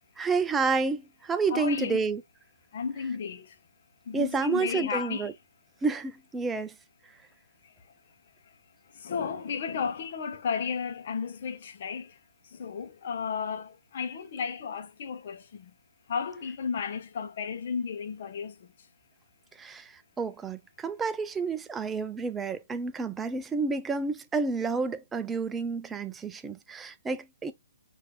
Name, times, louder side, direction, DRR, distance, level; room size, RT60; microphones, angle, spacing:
voice 1, 0.2-2.2 3.0-3.1 4.1-5.3 5.8-6.7 19.6-27.5, right 4 dB, 10° right, 0.4 m, -30 dB
voice 2, 1.5-2.0 2.7-3.6 4.1-5.3 7.6-7.7 8.4-8.5 8.9-12.2 12.4-15.7 16.1-18.7, left 6 dB, 50° left, 0.9 m, -34 dB
5.9 x 2.7 x 3.0 m
figure-of-eight pair, 135°, 0 cm